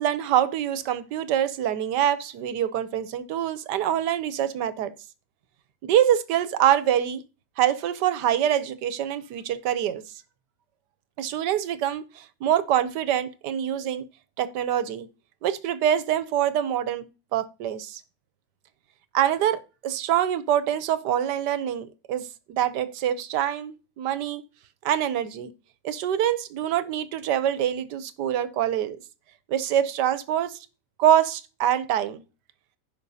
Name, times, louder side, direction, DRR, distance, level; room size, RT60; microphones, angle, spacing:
voice 1, 0.0-4.9 5.8-7.2 7.6-10.0 11.2-14.0 14.4-15.1 15.4-17.1 17.3-18.0 19.1-24.4 24.8-25.5 25.8-29.0 29.5-30.6 31.0-32.2, right 10 dB, 75° right, 1.3 m, -25 dB
15.5 x 5.5 x 2.7 m
omnidirectional pair, 1.9 m